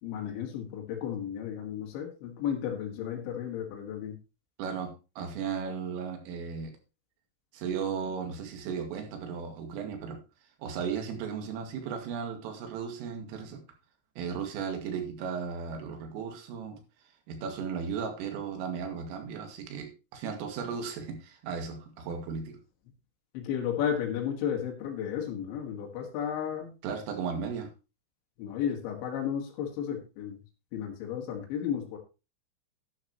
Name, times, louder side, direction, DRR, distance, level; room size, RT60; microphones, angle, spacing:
voice 1, 0.0-4.2 23.3-26.7 28.4-30.4 30.7-32.0, left 9 dB, 65° left, -1 dB, 3.9 m, -33 dB
voice 2, 4.6-6.7 7.5-10.2 10.6-13.6 14.2-16.8 17.3-22.6 26.8-27.7, right 6 dB, 80° right, 4 dB, 4.6 m, -35 dB
11.5 x 11.0 x 3.0 m, 0.30 s
omnidirectional pair, 5.9 m